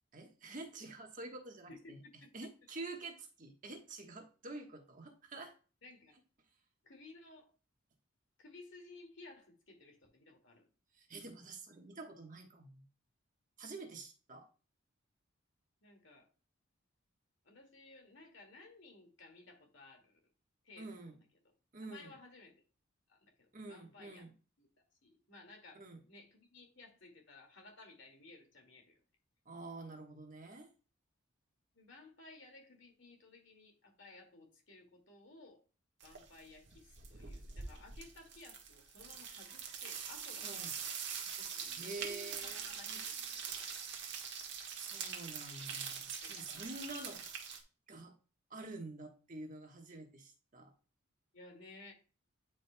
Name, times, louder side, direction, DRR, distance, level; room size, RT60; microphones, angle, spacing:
voice 1, 0.1-2.0 2.3-5.5 10.9-12.8 13.6-14.5 20.8-21.2 21.7-22.2 23.5-24.3 25.7-26.0 29.4-30.7 40.4-40.7 41.8-43.0 44.7-47.4 47.9-48.1 48.5-50.7, right 2 dB, 40° right, 3 dB, 1.2 m, -48 dB
voice 2, 1.7-2.3 5.8-6.2 6.8-7.5 8.4-10.7 15.8-16.3 17.4-20.2 20.6-21.1 21.8-22.6 23.1-24.3 24.6-24.7 25.0-28.9 31.7-35.6 36.0-40.6 41.4-43.8 46.2-46.9 51.3-51.9, left 3 dB, 60° left, 2 dB, 2.2 m, -57 dB
sound 1, 36.0-36.4 36.7-47.6, right 7 dB, 55° right, 1.3 m, -44 dB
9.7 x 5.1 x 2.2 m, 0.34 s
head